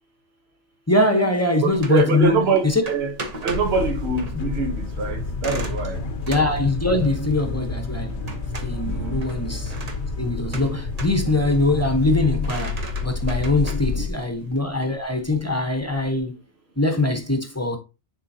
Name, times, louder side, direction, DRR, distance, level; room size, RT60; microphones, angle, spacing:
voice 1, 0.9-2.8 6.3-8.3 8.6-9.7 10.2-16.4 16.8-17.8, left 2 dB, 15° left, 0.9 m, -22 dB
voice 2, 1.6-3.1 3.4-6.0 8.8-9.2 13.6-14.0, right 4 dB, 60° right, 1.3 m, -24 dB
sound 1, 1.7-16.2, right 2 dB, 35° right, 1.0 m, -39 dB
sound 2, 3.5-14.1, left 4 dB, 65° left, 1.2 m, -29 dB
9.8 x 3.8 x 2.8 m
omnidirectional pair, 1.3 m